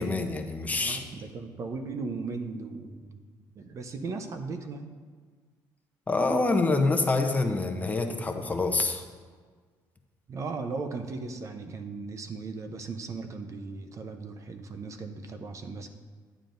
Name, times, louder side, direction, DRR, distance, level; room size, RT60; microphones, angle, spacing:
voice 1, 0.0-1.0 6.1-9.0, left 3 dB, 20° left, 5 dB, 0.8 m, -26 dB
voice 2, 0.7-3.2 3.5-4.9 10.3-15.9, right 4 dB, 40° right, 7 dB, 0.7 m, -37 dB
11.0 x 8.7 x 2.6 m, 1.5 s
cardioid pair, 110°, 8 cm